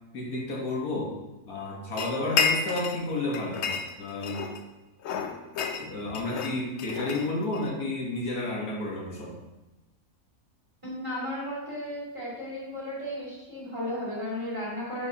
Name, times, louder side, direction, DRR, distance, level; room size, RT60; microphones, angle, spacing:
voice 1, 0.1-1.1 1.5-4.4 5.8-9.4, left 2 dB, 80° left, -2 dB, 1.8 m, -31 dB
sound 1, 2.0-3.0 3.3-4.6 5.0-7.7, left 6 dB, 65° left, 0.8 m, -30 dB
voice 2, 10.8-15.1, left 1 dB, 20° right, -6 dB, 2.3 m, -34 dB
9.1 x 5.2 x 2.8 m, 1.0 s
omnidirectional pair, 1.5 m